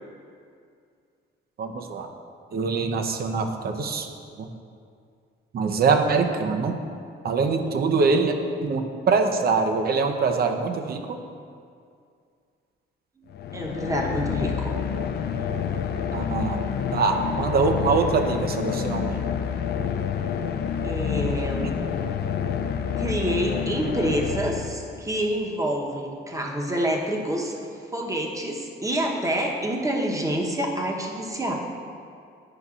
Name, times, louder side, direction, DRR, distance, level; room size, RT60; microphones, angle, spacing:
voice 1, 1.6-2.1 2.5-4.1 4.4-4.5 5.5-6.8 7.2-8.3 8.6-11.2 16.1-16.6 16.9-19.2, right 4 dB, 50° right, 5 dB, 0.6 m, -23 dB
voice 2, 7.5-8.2 13.5-14.8 20.8-21.7 23.0-27.5 27.9-31.5, right 1 dB, 15° right, 0 dB, 0.9 m, -27 dB
sound 1, 13.3-25.2, left 7 dB, 55° left, 0.4 m, -28 dB
9.6 x 5.3 x 2.4 m, 2.3 s
cardioid pair, 90°, 20 cm